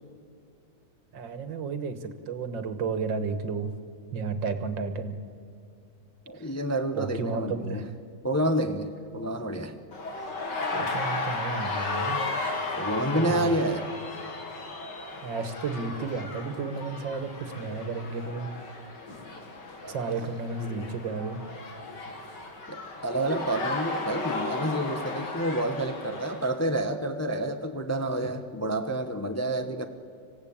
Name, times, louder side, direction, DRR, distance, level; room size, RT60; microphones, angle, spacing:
voice 1, 1.1-3.7 4.1-5.2 6.4-6.5 6.9-7.8 10.7-12.2 13.1-13.5 15.2-18.5 19.9-21.4, right 4 dB, 80° right, 9 dB, 2.1 m, -32 dB
voice 2, 6.3-7.9 8.2-9.7 12.8-13.9 19.8-20.3 22.7-29.9, right 1 dB, 15° left, 6 dB, 0.7 m, -29 dB
sound 1, 9.9-26.5, left 3 dB, 70° left, 2.9 m, -34 dB
26.0 x 16.0 x 8.8 m, 2.5 s
omnidirectional pair, 2.0 m